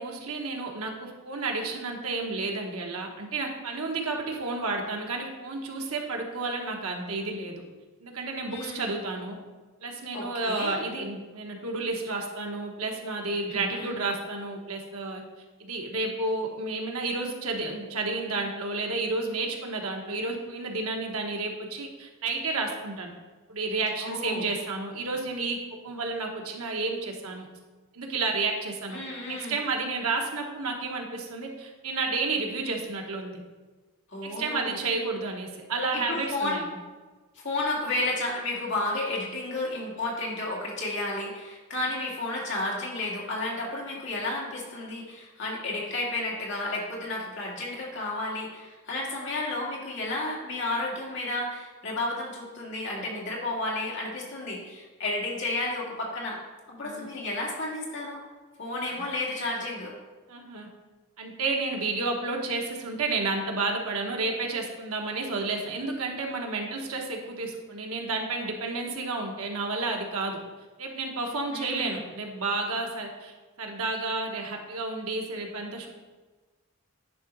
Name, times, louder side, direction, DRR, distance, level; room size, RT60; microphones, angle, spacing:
voice 1, 0.0-7.6 8.0-9.4 9.8-15.2 15.6-23.1 23.5-25.6 25.8-27.5 27.9-29.0 29.3-33.4 34.2-36.7 56.8-57.1 58.9-59.0 60.3-60.7 61.2-70.4 70.8-75.9, right 3 dB, 85° right, 1 dB, 1.2 m, -31 dB
voice 2, 8.5-8.9 10.1-10.8 13.5-14.0 24.0-24.5 28.9-29.6 34.1-34.8 35.9-36.6 37.3-56.4 56.7-58.2 58.6-59.9 71.5-72.0, left 2 dB, 55° left, -3 dB, 2.1 m, -32 dB
9.8 x 3.9 x 5.3 m, 1.3 s
head